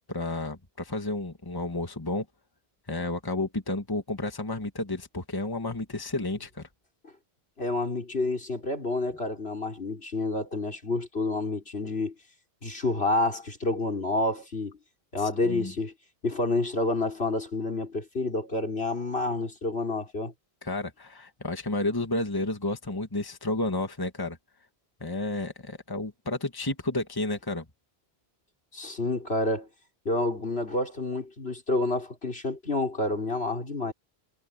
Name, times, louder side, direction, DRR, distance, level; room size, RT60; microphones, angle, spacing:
voice 1, 0.1-2.3 2.9-6.7 15.2-15.7 20.6-24.4 25.0-27.6, left 2 dB, 20° left, 1.7 m, -31 dB
voice 2, 7.6-12.1 12.6-14.8 15.1-15.9 16.2-20.3 28.7-29.7 30.0-33.9, left 2 dB, 75° left, 4.8 m, -29 dB
omnidirectional pair, 1.1 m